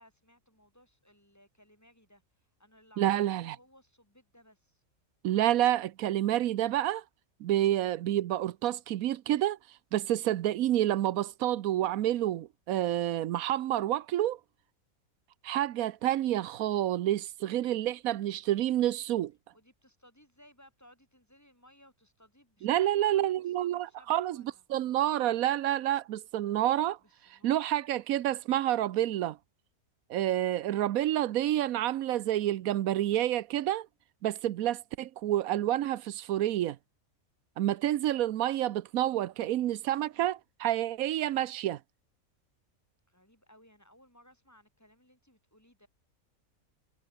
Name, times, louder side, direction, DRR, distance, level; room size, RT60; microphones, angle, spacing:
voice 1, 0.0-2.2 2.6-4.8 19.5-24.6 27.0-27.8 43.1-45.9, equal, 10° left, 4.4 m, -60 dB
voice 2, 3.0-3.6 5.2-7.0 7.4-9.6 9.9-14.4 15.4-19.3 22.6-24.4 24.7-27.0 27.3-29.4 30.1-33.9 34.2-36.8 37.6-41.8, right 13 dB, 90° right, 1.1 m, -28 dB
omnidirectional pair, 1.5 m